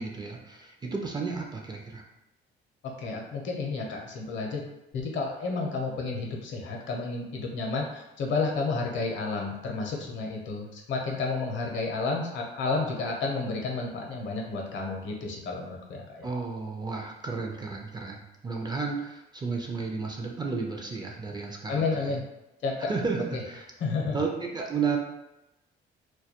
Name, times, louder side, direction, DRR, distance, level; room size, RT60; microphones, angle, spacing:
voice 1, 0.0-2.0 16.2-22.1 22.9-23.6 24.1-25.0, right 4 dB, 20° right, 0 dB, 0.4 m, -32 dB
voice 2, 2.8-16.3 21.7-22.2 22.6-22.9 23.3-23.4 23.8-24.2, left 3 dB, 65° left, 0 dB, 0.6 m, -31 dB
2.2 x 2.2 x 2.8 m, 0.92 s
cardioid pair, 95°, 21 cm